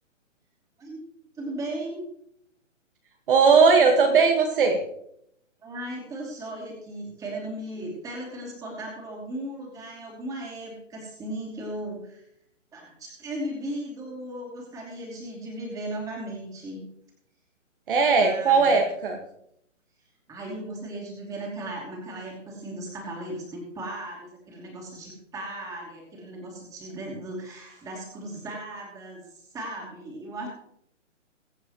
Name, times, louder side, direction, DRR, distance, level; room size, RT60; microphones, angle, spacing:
voice 1, 1.3-2.0 5.6-12.2 12.7-16.8 18.1-18.8 20.3-30.5, right 1 dB, 10° right, -2 dB, 2.8 m, -36 dB
voice 2, 3.3-4.8 17.9-19.2, right 5 dB, 45° right, 3 dB, 1.7 m, -18 dB
22.5 x 7.6 x 3.1 m, 0.73 s
hypercardioid pair, 160°, 38 cm